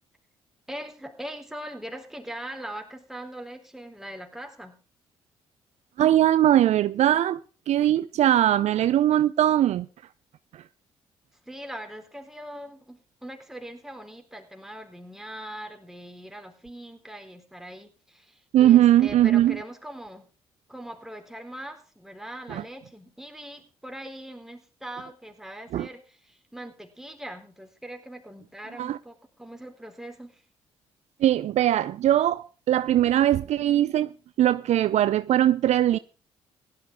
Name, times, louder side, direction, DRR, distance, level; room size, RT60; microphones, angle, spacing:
voice 1, 0.7-4.7 11.5-20.3 20.7-30.4, right 1 dB, 5° right, 4.2 m, -41 dB
voice 2, 6.0-7.4 7.7-9.9 10.5-10.6 18.5-19.6 22.5-22.6 25.7-25.9 28.8-29.0 31.2-34.1 34.4-36.0, right 12 dB, 65° right, 0.6 m, -20 dB
16.5 x 12.5 x 3.6 m
hypercardioid pair, 55°, 12 cm